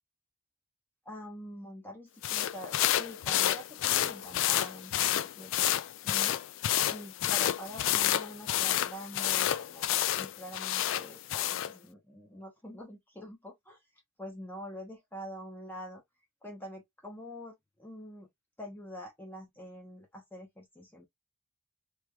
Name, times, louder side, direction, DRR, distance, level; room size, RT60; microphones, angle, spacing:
voice 1, 1.0-5.7 6.0-6.3 6.9-13.8 14.2-16.0 16.4-18.3 18.6-21.1, equal, 10° left, 0.8 m, -45 dB
sound 1, 2.2-11.7, left 12 dB, 70° left, 0.3 m, -29 dB
3.2 x 3.0 x 2.2 m
head